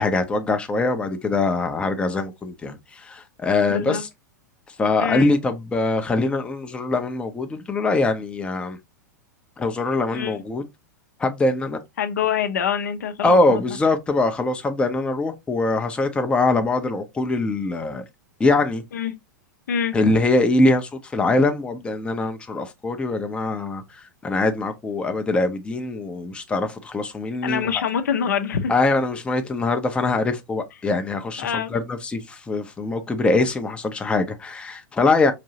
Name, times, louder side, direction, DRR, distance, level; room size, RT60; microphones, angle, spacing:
voice 1, 0.0-4.1 4.8-8.8 9.6-10.6 11.2-11.8 13.2-18.0 18.4-18.8 19.9-27.9 28.7-35.3, left 2 dB, 10° left, 0.6 m, -23 dB
voice 2, 3.7-4.0 5.0-5.3 10.1-10.4 12.0-13.6 18.9-19.1 19.7-20.0 27.4-28.7 31.4-31.7, left 8 dB, 65° left, 0.6 m, -25 dB
5.0 x 2.7 x 2.7 m
figure-of-eight pair, 95°, 10 cm